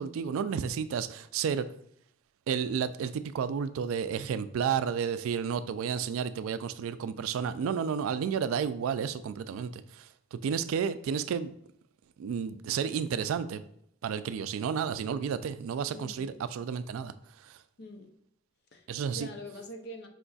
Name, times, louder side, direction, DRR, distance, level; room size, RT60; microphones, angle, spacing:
voice 1, 0.0-1.6 2.5-11.5 12.2-13.6 14.0-17.6 18.9-19.3, right 7 dB, 80° right, 13 dB, 0.3 m, -32 dB
voice 2, 15.9-16.4 17.8-18.1 18.7-20.1, equal, 55° left, 4 dB, 0.7 m, -44 dB
5.0 x 3.9 x 2.3 m, 0.71 s
head